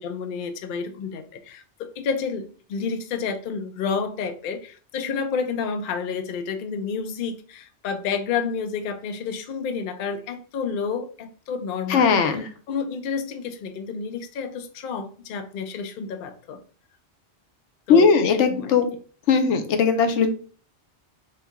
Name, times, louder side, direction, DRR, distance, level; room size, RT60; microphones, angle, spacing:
voice 1, 0.0-12.2 12.7-16.6 17.9-18.8, left 5 dB, 60° left, 7 dB, 0.6 m, -30 dB
voice 2, 11.9-12.5 17.9-18.9 19.3-20.3, left 5 dB, 85° left, 8 dB, 1.0 m, -18 dB
3.3 x 3.2 x 3.5 m, 0.40 s
omnidirectional pair, 1.2 m